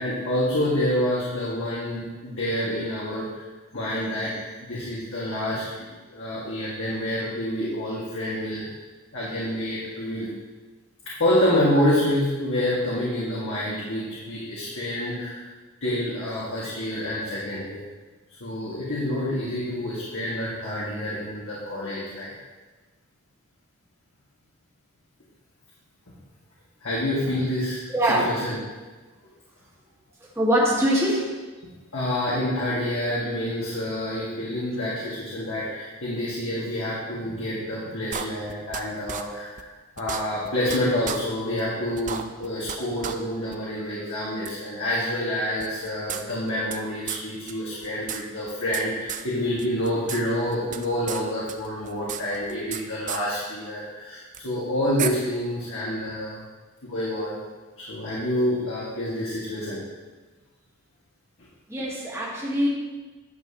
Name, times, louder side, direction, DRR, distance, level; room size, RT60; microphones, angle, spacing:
voice 1, 0.0-3.4 3.7-4.3 4.6-5.8 6.1-8.7 9.1-10.3 11.0-15.4 15.8-17.8 18.4-22.3 26.8-27.8 28.2-28.6 31.9-39.7 40.0-56.4 56.8-57.4 57.8-59.8, left 1 dB, 65° left, -8 dB, 1.8 m, -27 dB
voice 2, 27.9-28.3 30.4-31.3 61.7-62.7, equal, 15° right, -5 dB, 1.7 m, -22 dB
sound 1, 38.1-38.8 39.1-39.2 39.6-39.7 40.0-40.8 41.0-41.2 41.6-41.7 42.0-42.8 43.0-43.1 43.5-43.6 44.4-44.5 45.6-46.8 47.1-47.2 47.5-47.6 47.8-48.8 49.1-49.2 49.6-50.2 50.5-51.2 51.5-52.8 53.1-53.2 54.3-54.4 55.0-55.1, right 8 dB, 35° right, 0.4 m, -32 dB
10.5 x 7.1 x 2.9 m, 1.3 s
head